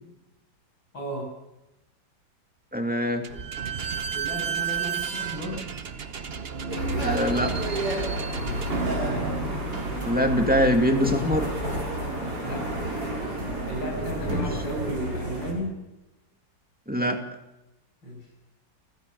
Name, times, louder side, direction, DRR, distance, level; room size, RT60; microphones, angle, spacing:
voice 1, 0.9-1.4 4.1-5.7 8.4-8.8 12.4-12.8 13.7-15.8 18.0-18.3, right 1 dB, 85° left, 2 dB, 7.5 m, -34 dB
voice 2, 2.7-3.3 7.0-7.6 10.1-11.5 14.3-14.4 16.9-17.2, equal, 5° right, 4 dB, 2.4 m, -23 dB
Slam / Squeak, 3.2-10.5, right 6 dB, 40° right, 1.0 m, -32 dB
sound 1, 6.7-15.5, right 1 dB, 55° right, 6.8 m, -30 dB
29.0 x 16.0 x 7.1 m, 0.94 s
omnidirectional pair, 2.0 m